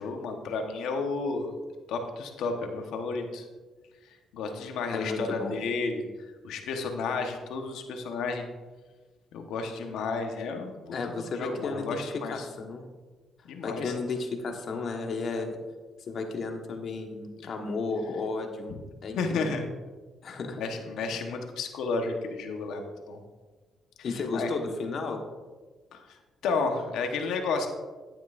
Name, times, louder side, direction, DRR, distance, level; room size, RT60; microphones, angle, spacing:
voice 1, 0.0-1.5 1.9-3.5 4.0-6.0 6.4-8.4 9.3-12.5 13.4-14.0 18.7-18.8 19.1-19.6 20.6-23.2 24.0-24.5 25.9-26.2 26.4-27.7, left 4 dB, 85° left, 4 dB, 1.1 m, -32 dB
voice 2, 4.9-5.5 10.9-12.9 13.6-15.6 16.1-18.7 19.0-19.5 20.2-20.6 24.0-25.2, left 3 dB, 55° left, 3 dB, 1.3 m, -33 dB
10.0 x 9.2 x 2.5 m, 1.3 s
cardioid pair, 90°, 0 cm